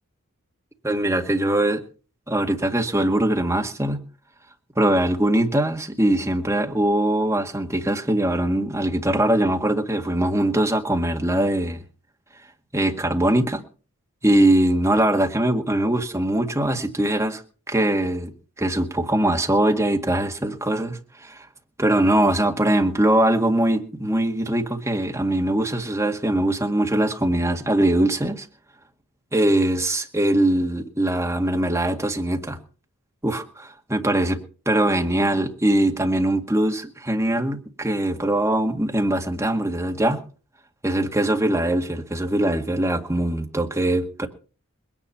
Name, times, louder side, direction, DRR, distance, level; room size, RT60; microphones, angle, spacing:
voice 1, 0.8-1.8 2.3-4.0 4.8-11.8 12.7-13.6 14.2-17.4 17.7-18.3 18.6-21.5 21.8-28.5 29.3-32.6 33.2-40.2 40.8-44.3, right 1 dB, 15° right, 1.9 m, -22 dB
21.0 x 10.0 x 5.7 m
head